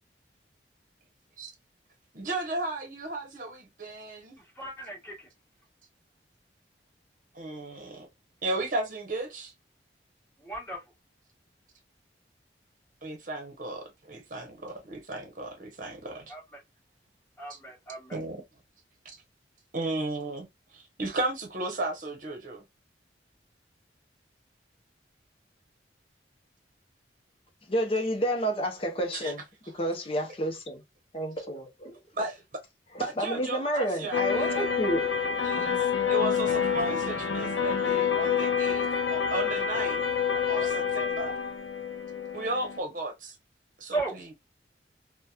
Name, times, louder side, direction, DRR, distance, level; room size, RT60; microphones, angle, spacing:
voice 1, 2.1-4.4 7.3-8.1 8.4-9.5 13.0-16.3 17.5-17.6 18.1-18.4 19.7-22.6 29.1-29.3 32.1-32.4 33.0-34.7 35.4-40.0 40.5-41.4 42.3-43.4 43.8-44.3, right 2 dB, 45° right, 0.9 m, -35 dB
voice 2, 4.6-5.3 10.4-10.8 16.3-16.4 17.4-18.2 40.3-40.7 43.9-44.2, right 3 dB, 10° left, 1.2 m, -36 dB
voice 3, 27.7-29.4 29.8-30.8 31.1-32.0 32.9-35.1 35.6-35.8, equal, 30° left, 0.6 m, -30 dB
sound 1, 34.1-42.8, left 7 dB, 80° left, 0.6 m, -28 dB
2.8 x 2.2 x 2.3 m
head